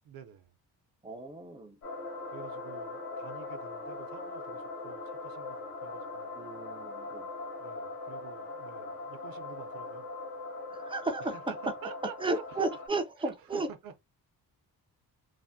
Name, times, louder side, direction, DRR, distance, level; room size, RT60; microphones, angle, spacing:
voice 1, 0.0-0.6 2.3-6.4 7.6-10.1 11.2-12.6 13.2-14.0, right 8 dB, 65° right, 0.6 m, -49 dB
voice 2, 1.0-1.8 6.4-7.3 10.7-11.3 12.2-13.7, right 2 dB, 15° right, 0.3 m, -34 dB
sound 1, 1.8-12.9, left 3 dB, 50° left, 1.1 m, -41 dB
3.3 x 2.1 x 2.6 m
wide cardioid pair, 180°, 38 cm